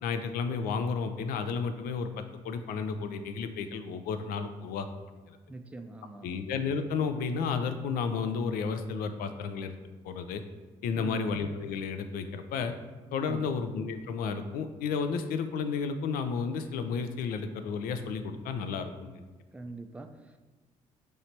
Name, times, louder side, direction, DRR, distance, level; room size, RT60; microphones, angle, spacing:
voice 1, 0.0-4.9 6.2-9.7 10.0-10.4 10.8-12.7 13.1-19.2, left 5 dB, 65° left, 9 dB, 0.4 m, -32 dB
voice 2, 5.5-6.4 10.9-11.3 13.2-13.6 19.5-20.4, right 2 dB, 10° right, 5 dB, 0.4 m, -43 dB
3.3 x 2.7 x 4.3 m, 1.3 s
hypercardioid pair, 50°, 16 cm